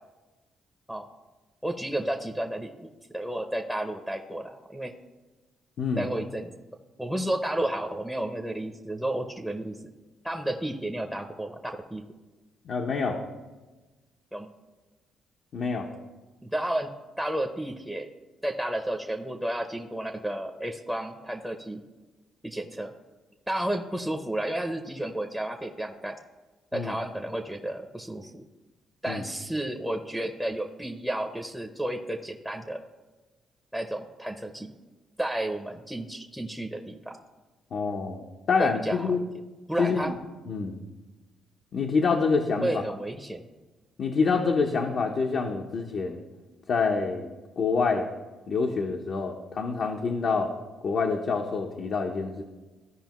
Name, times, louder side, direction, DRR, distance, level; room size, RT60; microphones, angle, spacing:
voice 1, 1.6-2.9 3.1-4.9 6.0-6.5 7.0-9.8 10.2-11.6 11.9-12.0 14.3-14.5 16.4-16.9 17.2-18.1 18.4-21.8 22.4-22.9 23.5-26.2 26.7-28.4 29.0-32.8 33.7-34.7 35.2-37.2 38.6-39.1 39.7-40.1 42.6-43.5, right 1 dB, 5° right, 3 dB, 0.7 m, -32 dB
voice 2, 5.8-6.1 12.6-13.2 15.5-15.9 26.7-26.9 29.1-29.2 37.7-39.2 39.8-40.2 40.5-40.8 41.7-42.8 44.0-46.2 46.7-48.1 48.5-50.5 50.8-52.4, left 4 dB, 60° left, 1 dB, 0.8 m, -27 dB
14.0 x 5.1 x 3.0 m, 1.2 s
cardioid pair, 90°, 0 cm